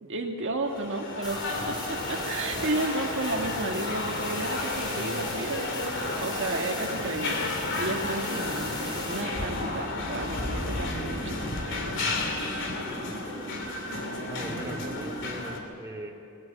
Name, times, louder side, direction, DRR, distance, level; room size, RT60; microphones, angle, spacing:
voice 1, 0.0-5.8 6.1-7.5 7.8-12.4, right 2 dB, 55° right, 1 dB, 1.8 m, -33 dB
sound 1, 0.6-15.6, left 2 dB, 60° left, 2.8 m, -32 dB
sound 2, 1.2-9.2, equal, 20° left, 5.7 m, -40 dB
sound 3, 6.8-15.4, equal, 75° left, 4.4 m, -42 dB
voice 2, 12.8-13.9 14.3-16.1, right 1 dB, 15° right, -2 dB, 2.7 m, -41 dB
20.0 x 19.0 x 9.0 m, 2.6 s
head